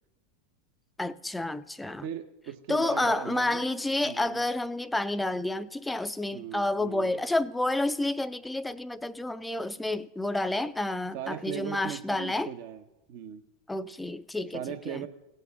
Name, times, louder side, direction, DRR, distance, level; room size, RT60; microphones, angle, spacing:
voice 1, 1.0-2.0 2.7-12.5 13.7-15.1, left 2 dB, 5° left, 0.5 m, -30 dB
voice 2, 2.0-3.6 4.0-4.4 6.3-7.2 11.1-12.8 13.1-13.4 14.5-15.1, right 10 dB, 55° right, 0.9 m, -38 dB
18.0 x 6.8 x 3.6 m
figure-of-eight pair, 90°, 0 cm